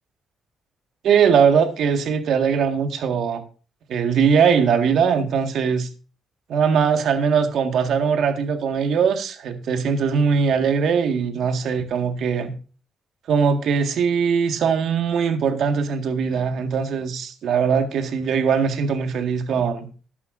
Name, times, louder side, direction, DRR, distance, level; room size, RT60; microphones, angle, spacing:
voice 1, 1.0-3.4 3.9-5.9 6.5-12.5 13.3-19.9, right 6 dB, 70° right, 6 dB, 1.7 m, -20 dB
13.5 x 11.0 x 2.6 m, 0.36 s
cardioid pair, 90°, 0 cm